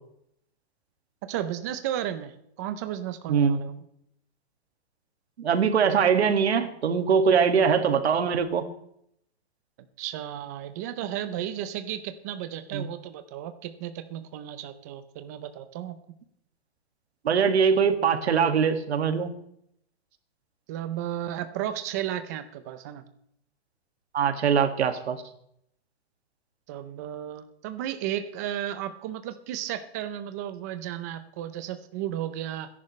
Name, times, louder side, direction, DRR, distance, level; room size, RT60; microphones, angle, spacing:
voice 1, 1.3-2.3 2.6-3.7 10.0-16.0 20.7-23.0 26.7-32.7, right 11 dB, 15° right, 10 dB, 0.5 m, -34 dB
voice 2, 5.4-8.6 12.7-12.9 17.2-19.3 24.1-25.2, right 6 dB, 85° right, 7 dB, 2.0 m, -22 dB
28.5 x 11.0 x 3.2 m, 0.73 s
hypercardioid pair, 170°, 32 cm